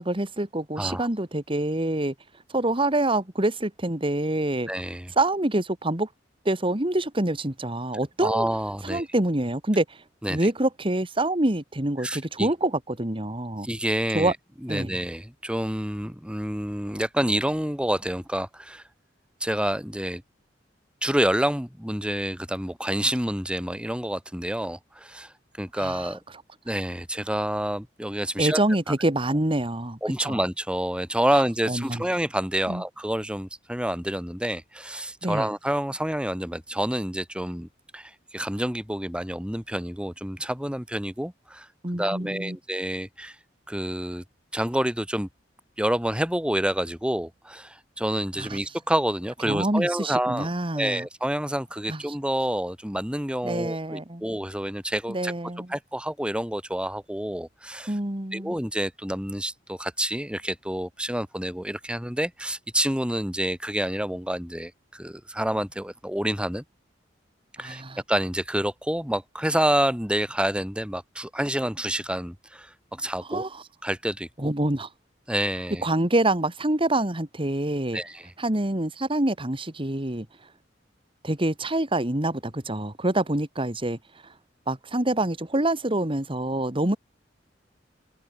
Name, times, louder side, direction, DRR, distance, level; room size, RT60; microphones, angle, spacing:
voice 1, 0.0-2.1 2.5-4.7 5.2-6.1 6.5-8.5 8.8-10.0 10.3-13.7 14.1-14.3 14.7-15.0 25.8-26.1 28.4-30.4 31.7-32.0 32.7-32.8 35.2-35.5 41.8-42.6 48.4-48.6 49.5-51.1 51.9-52.0 53.4-54.2 55.1-55.7 57.9-58.6 67.6-68.0 73.3-73.5 74.4-74.9 75.8-78.0 78.4-80.3 81.2-84.0 84.7-87.0, right 1 dB, 30° right, 2.3 m, -26 dB
voice 2, 0.8-1.1 4.7-5.1 8.2-9.1 10.2-10.5 12.0-12.5 13.6-14.3 14.6-18.8 19.4-20.2 21.0-26.2 26.6-28.6 30.0-41.7 41.9-43.4 43.7-44.2 44.5-45.3 45.8-50.5 50.7-55.3 55.7-57.9 58.3-66.6 67.6-67.8 68.1-73.4 73.8-74.5 75.3-75.8 77.9-78.3, right 1 dB, 5° right, 4.7 m, -28 dB
head